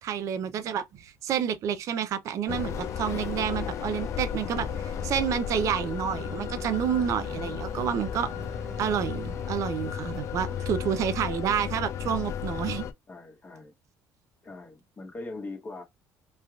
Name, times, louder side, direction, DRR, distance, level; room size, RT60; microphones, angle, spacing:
voice 1, 0.0-8.3 8.8-12.8, right 8 dB, 55° right, 0.5 m, -29 dB
sound 1, 2.5-12.9, left 8 dB, 50° left, 0.4 m, -34 dB
sound 2, 2.6-12.1, left 3 dB, 5° right, 0.5 m, -44 dB
voice 2, 13.1-13.7 14.4-15.8, left 2 dB, 25° left, 1.0 m, -41 dB
3.2 x 2.4 x 2.3 m
cardioid pair, 130°, 7 cm